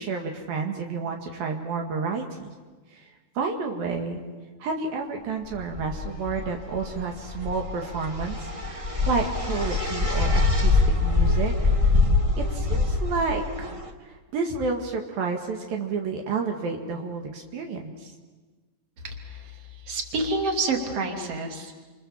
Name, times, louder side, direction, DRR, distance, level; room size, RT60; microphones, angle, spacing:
voice 1, 0.0-2.5 2.9-3.1 3.4-4.2 4.6-11.5 12.4-13.7 14.0-18.1, right 4 dB, 70° right, 2 dB, 3.5 m, -30 dB
sound 1, 5.5-13.9, left 3 dB, 25° right, 0.7 m, -24 dB
voice 2, 19.0-19.4 19.9-21.8, right 3 dB, 40° right, 3 dB, 3.6 m, -28 dB
29.5 x 27.0 x 7.3 m, 1.3 s
omnidirectional pair, 4.4 m